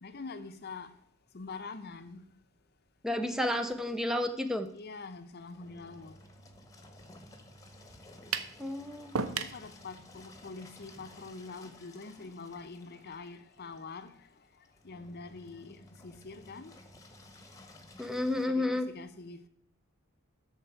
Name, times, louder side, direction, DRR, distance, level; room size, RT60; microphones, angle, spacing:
voice 1, 0.0-0.9 1.3-2.2 4.7-6.2 9.3-14.3 14.8-16.7 18.4-19.5, left 4 dB, 50° left, 0.7 m, -45 dB
voice 2, 3.0-4.7 8.6-9.2 18.0-18.9, left 1 dB, 5° right, 0.6 m, -31 dB
Engine, 3.3-18.5, left 1 dB, 15° left, 1.1 m, -55 dB
sound 1, 8.3-8.6 9.1-9.6, right 5 dB, 90° right, 0.7 m, -32 dB
13.0 x 4.6 x 4.6 m
head